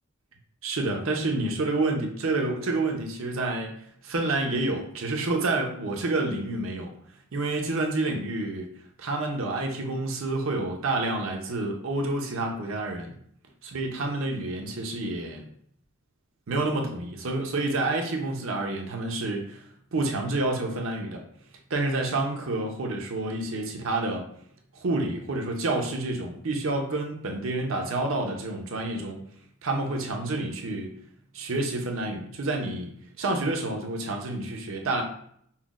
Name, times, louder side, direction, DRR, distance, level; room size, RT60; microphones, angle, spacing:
voice 1, 0.6-3.7 4.0-6.9 7.3-8.7 9.0-13.1 13.6-15.4 16.5-19.6 19.9-21.2 21.7-24.3 24.7-29.2 29.6-30.9 31.3-32.9 33.2-35.0, right 2 dB, 70° right, 2 dB, 0.6 m, -28 dB
5.5 x 2.1 x 2.4 m, 0.65 s
head